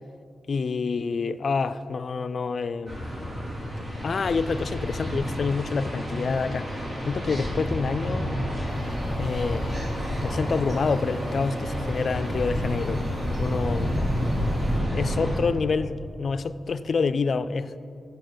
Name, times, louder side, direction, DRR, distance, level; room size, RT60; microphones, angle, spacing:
voice 1, 0.5-3.0 4.0-8.3 9.2-9.9 10.2-13.1 13.4-14.0 14.9-17.8, left 4 dB, 55° left, 0.4 m, -27 dB
sound 1, 2.9-15.4, equal, 35° right, 2.8 m, -29 dB
sound 2, 8.7-14.8, left 2 dB, 55° right, 2.4 m, -46 dB
16.0 x 7.1 x 3.9 m
cardioid pair, 85°, 0 cm